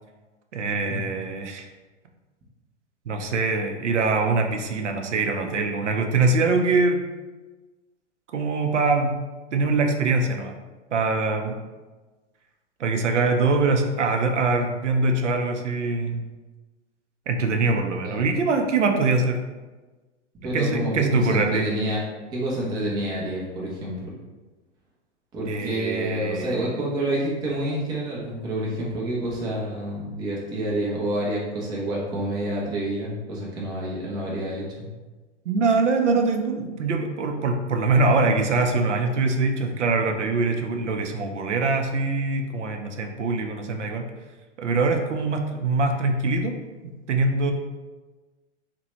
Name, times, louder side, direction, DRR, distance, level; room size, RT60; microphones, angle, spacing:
voice 1, 0.5-1.7 3.1-7.0 8.3-9.1 9.5-10.5 10.9-11.6 12.8-16.2 17.3-19.4 20.5-21.7 25.5-26.8 35.5-44.1 44.6-46.6 46.8-47.5, right 3 dB, 80° right, 4 dB, 0.5 m, -23 dB
voice 2, 17.9-18.2 20.4-24.1 25.3-34.6, right 1 dB, 10° right, -4 dB, 0.4 m, -28 dB
2.7 x 2.2 x 3.0 m, 1.2 s
figure-of-eight pair, 105°, 35 cm